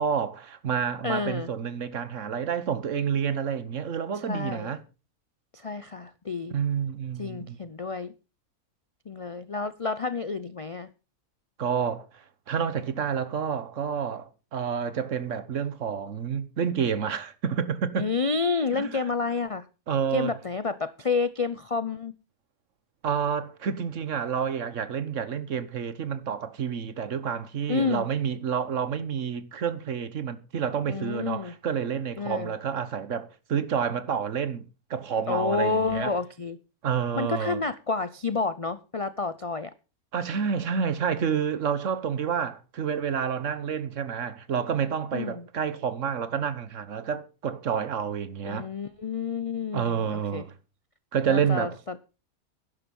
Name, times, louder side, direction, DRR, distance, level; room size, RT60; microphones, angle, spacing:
voice 1, 0.0-4.8 6.5-7.6 11.6-18.1 18.7-19.0 19.9-20.4 23.0-34.6 34.9-36.1 36.8-37.6 40.1-48.7 49.7-50.5 51.1-51.8, right 7 dB, 60° right, 1.4 m, -29 dB
voice 2, 1.0-1.5 4.3-4.7 5.6-6.5 7.2-8.1 9.1-10.9 18.0-19.6 20.1-22.1 27.7-28.1 30.9-31.5 32.2-32.5 35.3-36.6 37.2-39.7 45.1-45.4 48.4-50.4 51.3-52.0, left 4 dB, 65° left, 0.3 m, -29 dB
11.5 x 11.0 x 5.4 m
omnidirectional pair, 1.5 m